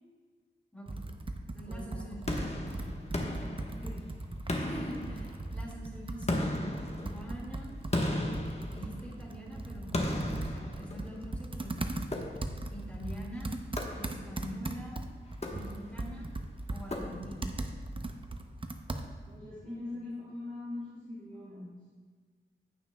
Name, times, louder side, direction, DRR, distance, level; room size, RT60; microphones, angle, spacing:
voice 1, 0.7-1.0 1.5-2.2 4.5-6.5 7.0-7.8 8.7-12.0 12.7-13.5 13.9-15.0 15.5-16.3 16.7-17.5 19.9-20.0, equal, 5° left, -2 dB, 2.2 m, -44 dB
Computer keyboard, 0.9-19.4, right 2 dB, 25° right, 0.6 m, -39 dB
voice 2, 1.6-2.2 2.6-4.0 19.3-21.8, left 2 dB, 45° right, -8 dB, 2.5 m, -43 dB
sound 1, 2.3-4.1 4.5-5.7 6.3-9.3 9.9-11.4 12.1-12.8 13.8-14.5 15.3-16.1 16.9-17.6, left 1 dB, 30° left, 1.2 m, -36 dB
16.5 x 5.8 x 2.2 m, 1.5 s
wide cardioid pair, 70°, 20 cm